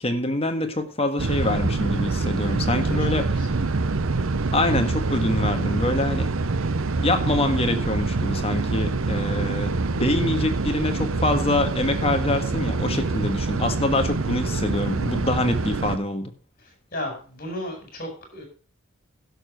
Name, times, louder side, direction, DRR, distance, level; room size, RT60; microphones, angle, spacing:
voice 1, 0.0-3.3 4.5-6.3 7.0-16.3, left 2 dB, 30° left, 6 dB, 1.6 m, -25 dB
sound 1, 1.2-16.0, right 3 dB, 75° right, 0.8 m, -25 dB
voice 2, 2.7-3.8 16.6-18.4, left 1 dB, 45° left, 3 dB, 5.3 m, -35 dB
11.5 x 6.8 x 6.5 m, 0.40 s
head